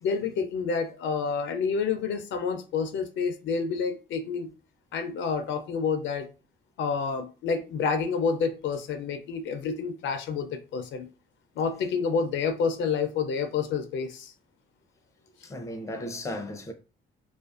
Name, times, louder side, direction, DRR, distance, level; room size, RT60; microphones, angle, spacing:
voice 1, 0.0-4.5 4.9-6.3 6.8-11.1 11.6-14.3, left 5 dB, 70° left, 0.5 m, -29 dB
voice 2, 15.4-16.7, left 1 dB, 15° left, 0.5 m, -35 dB
2.4 x 2.4 x 2.4 m
cardioid pair, 90°, 20 cm